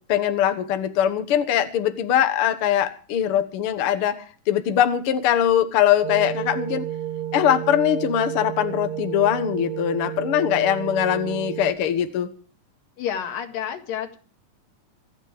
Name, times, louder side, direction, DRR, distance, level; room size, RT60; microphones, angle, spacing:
voice 1, 0.1-6.9 7.3-12.3, left 10 dB, 55° left, 1.8 m, -22 dB
sound 1, 6.0-11.7, right 11 dB, 60° right, 2.1 m, -31 dB
voice 2, 13.0-14.2, left 9 dB, 85° left, 3.5 m, -29 dB
26.0 x 9.7 x 5.1 m
omnidirectional pair, 3.8 m